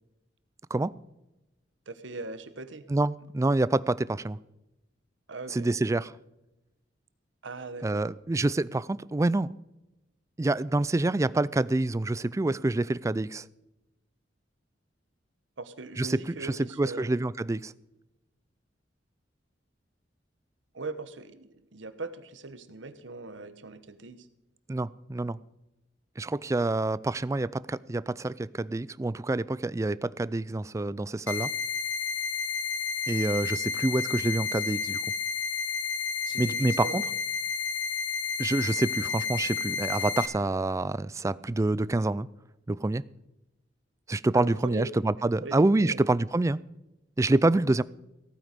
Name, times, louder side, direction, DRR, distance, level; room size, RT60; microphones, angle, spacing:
voice 1, 1.9-2.9 5.3-5.7 7.4-8.0 15.6-17.1 20.7-24.3 36.3-37.0 44.3-44.9 45.4-46.0, right 3 dB, 85° right, 1.1 m, -40 dB
voice 2, 2.9-4.4 5.5-6.1 7.8-9.5 10.4-13.5 16.0-17.7 24.7-25.4 26.2-31.5 33.1-35.0 36.4-37.0 38.4-42.3 42.7-43.0 44.1-46.6 47.2-47.8, right 2 dB, 15° right, 0.3 m, -27 dB
sound 1, 31.3-40.3, left 6 dB, 75° left, 0.9 m, -31 dB
15.5 x 9.3 x 5.2 m
head